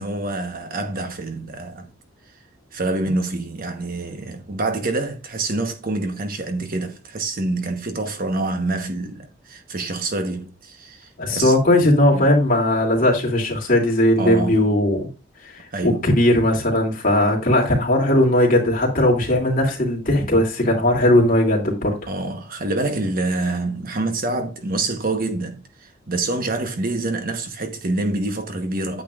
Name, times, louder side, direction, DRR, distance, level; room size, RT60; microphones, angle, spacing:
voice 1, 0.0-1.9 2.7-11.5 12.1-12.3 14.2-14.7 15.7-16.1 22.1-29.0, right 2 dB, 50° right, 1.1 m, -26 dB
voice 2, 11.2-15.1 15.5-21.9, left 1 dB, 45° left, 2.8 m, -18 dB
9.0 x 8.5 x 2.5 m
head